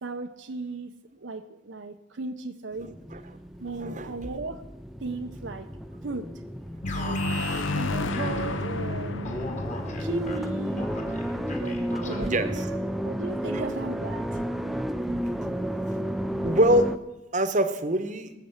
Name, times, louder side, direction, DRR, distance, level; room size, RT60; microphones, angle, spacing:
voice 1, 0.0-2.9 3.6-4.6 5.0-5.7 6.0-6.3 6.9-9.6 10.0-10.9 11.6-12.8 13.0-14.4, right 3 dB, 65° right, 7 dB, 0.6 m, -36 dB
sound 1, 2.8-17.0, equal, ahead, 0.4 m, -32 dB
voice 2, 3.8-4.1 12.2-12.6 13.5-13.6 16.4-17.0 17.3-18.3, right 1 dB, 40° right, 10 dB, 1.0 m, -24 dB
sound 2, 6.8-11.4, left 2 dB, 75° left, 0.9 m, -32 dB
Alarm, 6.9-8.9 9.2-12.5, left 2 dB, 35° left, 2.1 m, -39 dB
19.0 x 6.7 x 8.0 m, 0.99 s
head